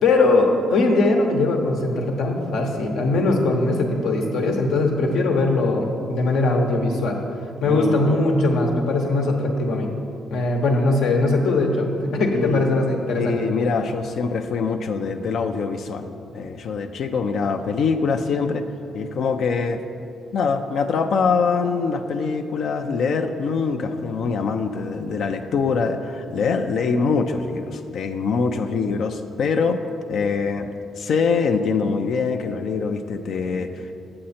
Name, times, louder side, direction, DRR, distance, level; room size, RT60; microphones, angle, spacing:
voice 1, 0.0-7.2 7.6-9.9 10.3-11.9 12.1-13.4, left 2 dB, 80° left, 2 dB, 1.1 m, -20 dB
voice 2, 7.7-8.2 12.3-12.6 13.2-18.7 18.9-19.8 20.3-29.8 30.1-30.7 31.0-33.9, left 5 dB, 65° left, 6 dB, 0.4 m, -24 dB
7.6 x 7.5 x 4.3 m, 2.5 s
cardioid pair, 90°, 0 cm